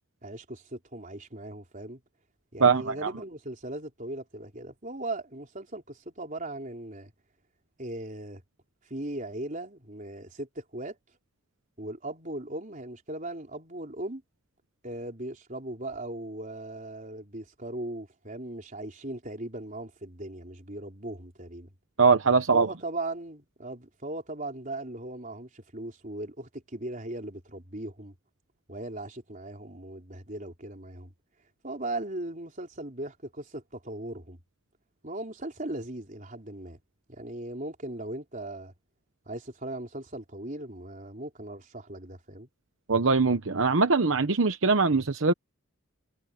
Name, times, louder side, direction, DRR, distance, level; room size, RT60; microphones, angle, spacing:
voice 1, 0.2-2.0 2.5-7.1 7.8-8.4 8.9-11.0 11.8-14.2 14.8-21.7 22.5-28.1 28.7-31.1 31.6-34.4 35.0-36.8 37.1-38.7 39.3-42.5, right 1 dB, 40° right, 4.1 m, -38 dB
voice 2, 2.6-3.1 22.0-22.7 42.9-45.3, right 4 dB, 65° right, 1.0 m, -22 dB
head